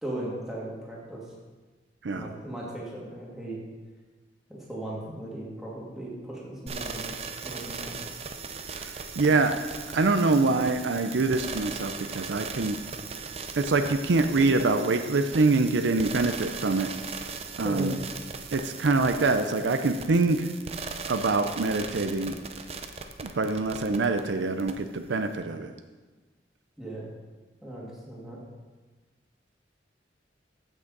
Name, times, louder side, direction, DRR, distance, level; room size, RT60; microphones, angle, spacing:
voice 1, 0.0-1.2 2.1-3.6 4.5-7.1 7.4-8.0 17.6-17.9 26.8-27.0 27.6-28.4, right 1 dB, 5° right, -6 dB, 2.4 m, -37 dB
sound 1, 6.7-24.2 24.6-24.7, right 5 dB, 35° right, 0.6 m, -38 dB
voice 2, 8.7-9.5 9.9-12.8 13.6-16.9 17.6-18.0 18.5-20.5 21.0-22.3 23.2-25.7, right 3 dB, 75° right, 7 dB, 0.6 m, -25 dB
14.5 x 6.1 x 4.0 m, 1.3 s
head